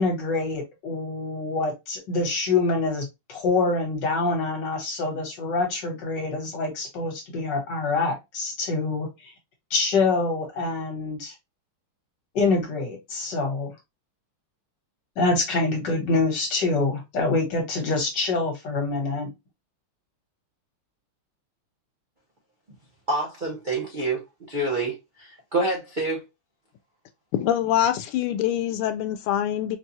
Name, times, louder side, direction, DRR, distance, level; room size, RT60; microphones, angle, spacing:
voice 1, 0.0-9.1 9.7-11.3 12.3-13.7 15.2-19.3, left 3 dB, 60° left, 1.8 m, -25 dB
voice 2, 23.1-26.2, right 2 dB, 65° right, 0.4 m, -27 dB
voice 3, 27.3-29.8, left 11 dB, 85° left, 1.4 m, -24 dB
4.5 x 2.3 x 2.7 m
omnidirectional pair, 2.3 m